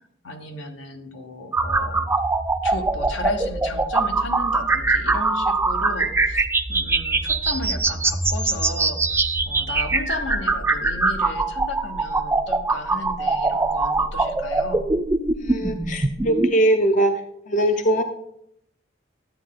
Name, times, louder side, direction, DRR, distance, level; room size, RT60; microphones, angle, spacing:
voice 1, 0.2-2.1 2.6-9.0 9.4-14.9, left 2 dB, 75° left, 5 dB, 1.2 m, -34 dB
sound 1, 1.5-16.5, right 3 dB, 15° right, 0.4 m, -22 dB
voice 2, 15.4-17.1 17.5-18.0, right 1 dB, 40° left, 7 dB, 0.6 m, -21 dB
11.5 x 8.5 x 3.8 m, 0.78 s
head